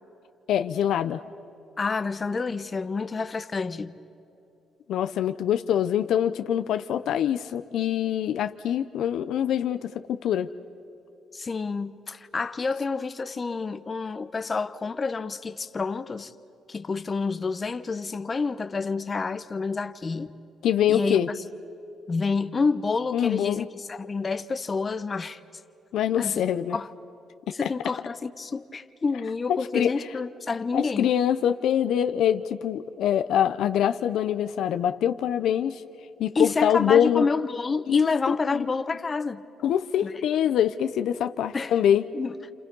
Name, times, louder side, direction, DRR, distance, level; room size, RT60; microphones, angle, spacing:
voice 1, 0.5-1.2 4.9-10.5 20.6-21.3 23.1-23.7 25.9-26.8 27.6-27.7 29.5-29.9 30.7-35.8 36.2-37.3 37.9-38.0 38.5-38.6 39.6-42.0, left 10 dB, 80° left, 0.7 m, -24 dB
voice 2, 1.8-3.9 11.3-16.3 16.7-20.3 20.9-21.4 22.1-25.4 26.2-26.4 26.7-26.9 27.5-31.1 36.3-39.4 40.0-40.2 41.5-41.7 42.1-42.3, left 4 dB, 35° left, 0.9 m, -28 dB
30.0 x 28.0 x 5.4 m
cardioid pair, 90°, 0 cm